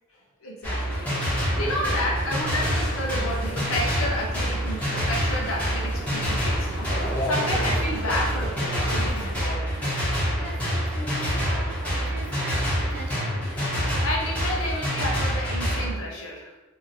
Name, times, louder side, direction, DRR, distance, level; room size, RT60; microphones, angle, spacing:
voice 1, 0.4-9.8 13.7-16.5, left 1 dB, 80° left, -2 dB, 0.8 m, -31 dB
sound 1, 0.6-15.9, equal, 5° left, 1.0 m, -26 dB
sound 2, 1.5-9.4, equal, 25° left, 0.7 m, -36 dB
voice 2, 10.4-13.8, right 1 dB, 50° right, -1 dB, 0.5 m, -41 dB
2.7 x 2.7 x 2.7 m, 1.1 s
head